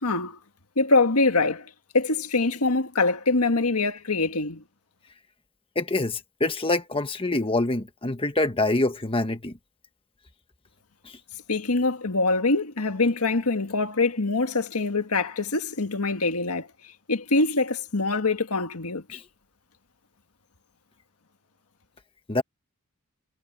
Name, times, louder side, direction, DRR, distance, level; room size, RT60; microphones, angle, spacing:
voice 1, 0.0-0.4 0.8-1.7 1.9-4.6 11.5-19.2, left 3 dB, 80° left, 1.8 m, -24 dB
voice 2, 5.7-9.5 22.3-22.4, left 2 dB, 25° left, 1.4 m, -25 dB
head